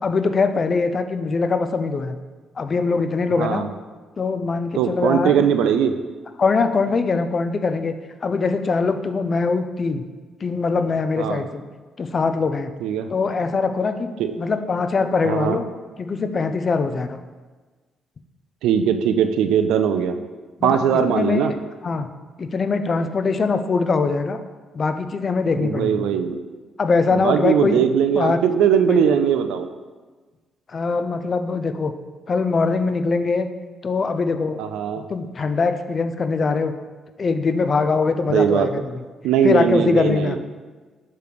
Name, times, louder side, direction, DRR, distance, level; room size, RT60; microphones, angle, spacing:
voice 1, 0.0-2.2 2.6-3.7 4.2-5.4 6.4-7.9 8.2-10.0 10.4-11.6 12.0-12.7 13.1-15.6 16.0-17.2 20.6-21.5 21.8-22.1 22.4-24.4 24.7-26.1 26.8-27.8 28.1-28.4 28.9-29.0 30.7-31.9 32.3-33.5 33.8-34.6 35.1-36.7 37.2-39.0 39.4-40.4, left 4 dB, 40° left, 9 dB, 0.5 m, -22 dB
voice 2, 4.8-6.0 11.2-11.4 12.8-13.1 14.2-14.4 15.2-15.6 18.6-20.1 20.6-21.5 25.6-26.4 27.1-29.7 34.6-35.0 38.3-38.7 39.2-40.4, right 8 dB, 90° right, 8 dB, 0.4 m, -20 dB
6.8 x 3.2 x 5.1 m, 1.3 s
cardioid pair, 90°, 0 cm